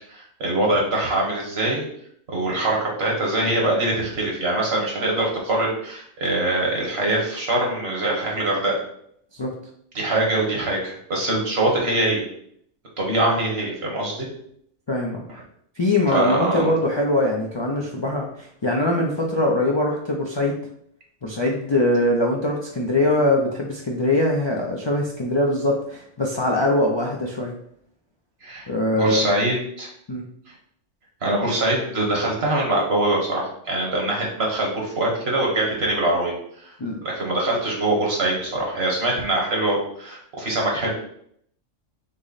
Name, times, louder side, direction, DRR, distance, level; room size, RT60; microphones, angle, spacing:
voice 1, 0.1-1.9 2.3-8.8 9.9-12.2 13.0-14.3 16.1-16.7 28.4-28.7 28.9-29.9 31.2-36.3 36.6-36.7 37.0-40.9, right 1 dB, 60° right, -2 dB, 1.5 m, -23 dB
voice 2, 14.9-15.2 15.8-20.5 21.2-27.5 28.7-29.2 30.1-30.2 36.8-37.0, left 1 dB, 40° left, -2 dB, 0.4 m, -22 dB
6.1 x 2.1 x 4.0 m, 0.68 s
omnidirectional pair, 1.2 m